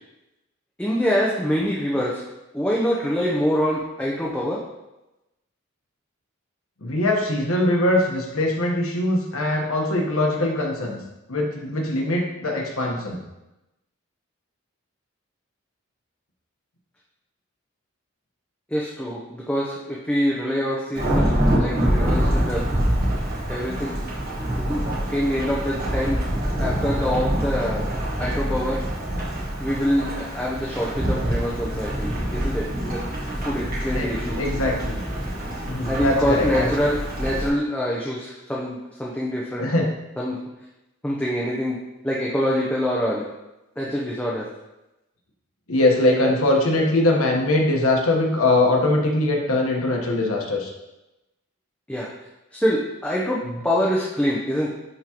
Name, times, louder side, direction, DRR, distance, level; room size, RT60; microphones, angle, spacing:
voice 1, 0.8-2.2 2.5-4.6 18.7-22.7 23.5-24.0 24.6-24.8 25.1-26.3 26.6-27.8 28.2-28.8 29.6-33.1 33.4-34.4 35.9-39.7 40.2-40.4 41.0-41.8 42.0-43.3 43.8-44.5 51.9-52.1 52.5-54.7, equal, 5° left, -4 dB, 0.6 m, -25 dB
voice 2, 6.8-11.0 11.3-13.2 33.9-34.1 34.4-34.9 35.7-36.7 39.6-39.9 45.7-50.7 53.5-53.6, left 1 dB, 80° left, 0 dB, 1.2 m, -22 dB
Thunderstorm / Rain, 20.9-37.5, equal, 40° right, 1.4 m, -25 dB
10.5 x 3.6 x 2.9 m, 0.97 s
head